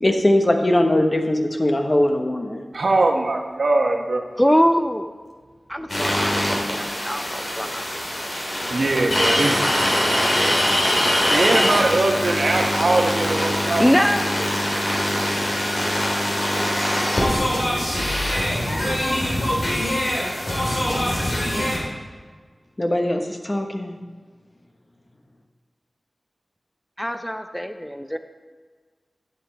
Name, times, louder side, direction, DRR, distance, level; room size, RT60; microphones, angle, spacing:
voice 1, 0.0-2.6 22.8-24.0, left 1 dB, 35° left, 4 dB, 1.2 m, -20 dB
voice 2, 2.7-4.2 8.7-9.5 11.3-13.8, right 2 dB, 75° right, 2 dB, 1.1 m, -21 dB
voice 3, 4.4-5.1 5.7-7.8 13.8-14.5 27.0-28.2, equal, 5° left, 7 dB, 0.5 m, -22 dB
sound 1, 5.9-21.8, equal, 60° left, 3.1 m, -23 dB
11.0 x 7.9 x 4.1 m, 1.5 s
wide cardioid pair, 50°, 0 cm